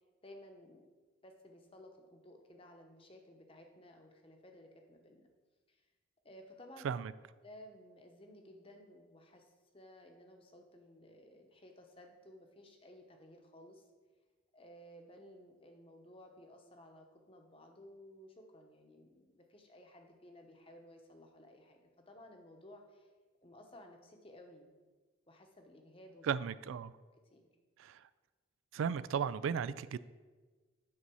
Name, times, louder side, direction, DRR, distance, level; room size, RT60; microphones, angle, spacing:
voice 1, 0.2-0.9 1.2-5.3 5.7-5.8 6.2-7.0 7.4-9.5 9.7-13.8 14.5-23.1 23.4-24.8 25.3-26.3 27.3-27.5, left 1 dB, 25° left, 3 dB, 0.9 m, -56 dB
voice 2, 26.2-26.9 27.8-28.1 28.7-30.0, right 7 dB, 85° right, 17 dB, 0.3 m, -35 dB
9.7 x 4.1 x 6.2 m, 1.4 s
head